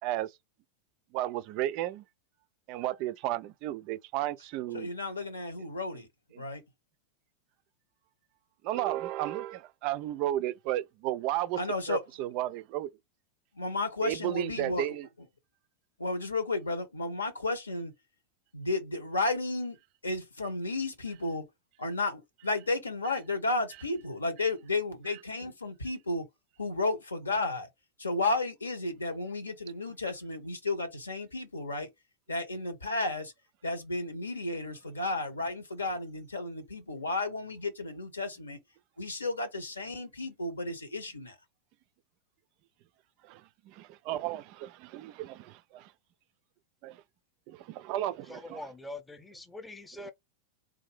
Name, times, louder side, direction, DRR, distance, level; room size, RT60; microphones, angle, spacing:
voice 1, 1.1-2.0 2.7-4.9 6.3-6.4 8.6-11.6 11.9-12.9 14.0-15.1 43.2-45.9 46.8-47.0 47.5-48.7 50.0-50.1, right 14 dB, 45° right, 0.3 m, -33 dB
voice 2, 4.7-6.1 6.3-6.6 11.6-12.0 13.5-14.9 16.0-17.9 18.5-19.8 20.0-21.4 21.8-26.3 26.6-27.7 28.0-31.9 32.3-33.3 33.6-38.6 39.0-41.4, left 2 dB, 75° left, 1.0 m, -33 dB
voice 3, 48.3-50.1, left 2 dB, 10° left, 0.7 m, -43 dB
3.6 x 2.6 x 3.3 m
figure-of-eight pair, 90°, 0 cm